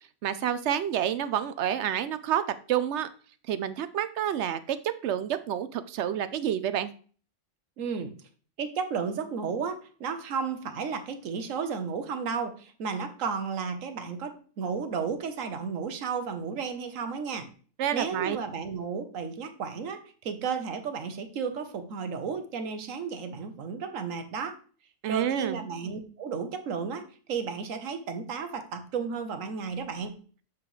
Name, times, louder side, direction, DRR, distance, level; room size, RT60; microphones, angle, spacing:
voice 1, 0.2-2.4 2.7-3.1 3.5-6.9 17.8-18.4 25.0-25.6, right 10 dB, 70° right, 13 dB, 0.8 m, -29 dB
voice 2, 7.8-8.1 8.6-17.5 17.9-24.6 25.1-30.2, right 5 dB, 90° right, 9 dB, 1.3 m, -33 dB
6.8 x 5.9 x 3.1 m, 0.41 s
omnidirectional pair, 1.3 m